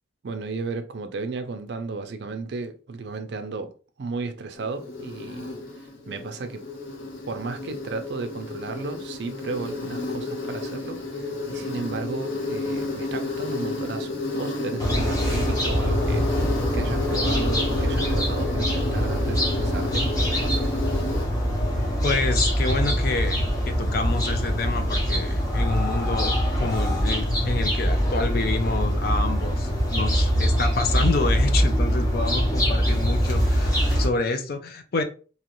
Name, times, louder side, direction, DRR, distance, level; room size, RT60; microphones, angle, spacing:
voice 1, 0.2-5.5 6.1-6.6 7.3-20.7, right 3 dB, 60° right, 0.4 m, -34 dB
Insect, 4.6-21.2, left 2 dB, 80° left, 0.9 m, -31 dB
sound 1, 14.8-34.0, equal, 20° left, 0.8 m, -23 dB
voice 2, 22.0-35.0, left 3 dB, 50° left, 0.4 m, -28 dB
2.9 x 2.4 x 3.0 m
head